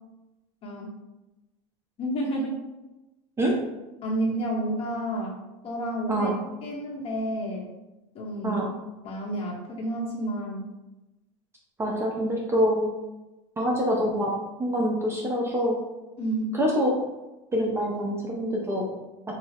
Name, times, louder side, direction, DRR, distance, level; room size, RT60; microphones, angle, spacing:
voice 1, 2.0-2.6 4.0-5.4 5.6-6.3 6.6-7.7 8.1-8.6 9.0-10.7 16.2-16.6, right 1 dB, 35° left, -2 dB, 1.0 m, -30 dB
voice 2, 11.8-12.9 13.6-14.3 14.6-15.8 16.6-16.9 17.5-18.8, equal, 15° right, -1 dB, 0.5 m, -25 dB
3.2 x 2.2 x 3.4 m, 1.0 s
supercardioid pair, 120°, 16 cm